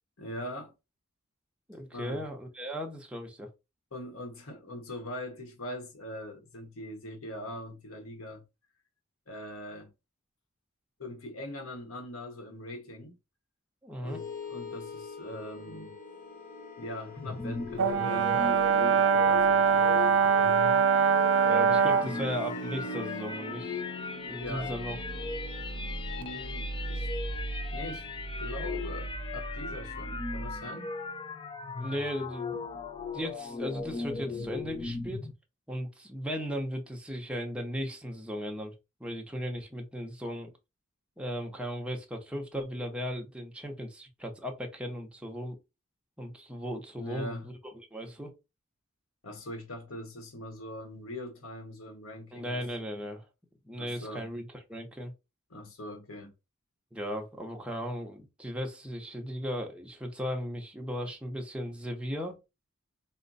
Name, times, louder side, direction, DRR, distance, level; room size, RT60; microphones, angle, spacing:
voice 1, 0.2-0.7 1.9-2.2 3.9-8.4 9.3-9.9 11.0-13.1 14.0-16.0 16.8-20.6 21.9-22.1 24.1-24.7 26.2-27.4 27.7-28.1 28.4-30.9 47.0-47.5 49.2-52.6 53.8-54.3 55.5-56.3, left 1 dB, 80° left, 1.2 m, -42 dB
voice 2, 1.7-3.5 13.8-14.2 21.5-23.8 24.2-25.0 31.8-32.6 33.1-35.2 35.7-38.7 39.0-40.5 41.2-45.6 46.2-48.3 52.3-53.2 53.6-55.1 56.9-62.4, equal, 5° right, 0.7 m, -36 dB
sound 1, 14.1-30.6, right 1 dB, 40° left, 1.0 m, -40 dB
sound 2, 17.2-35.3, left 4 dB, 25° left, 0.5 m, -38 dB
Brass instrument, 17.8-22.1, right 6 dB, 75° right, 0.5 m, -23 dB
4.3 x 2.2 x 3.9 m
head